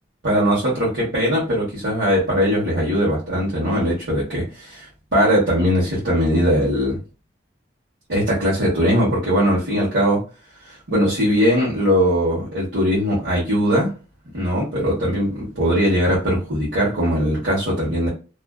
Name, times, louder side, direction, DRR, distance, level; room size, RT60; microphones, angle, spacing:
voice 1, 0.2-7.0 8.1-10.2 10.6-13.9 14.3-18.1, equal, 85° right, 1.0 m, -20 dB
2.4 x 2.3 x 2.2 m
head